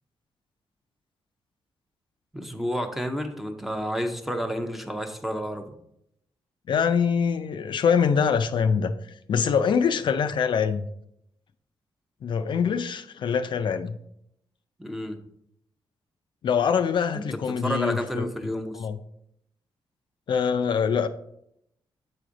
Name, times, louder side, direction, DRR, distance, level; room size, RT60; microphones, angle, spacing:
voice 1, 2.3-5.6 14.8-15.2 17.1-18.8, equal, ahead, 0.6 m, -30 dB
voice 2, 6.7-8.9 9.3-10.9 12.2-14.0 16.4-18.3 18.7-19.0 20.3-21.1, left 6 dB, 55° left, 0.4 m, -24 dB
7.7 x 4.9 x 3.9 m
wide cardioid pair, 125°, 9 cm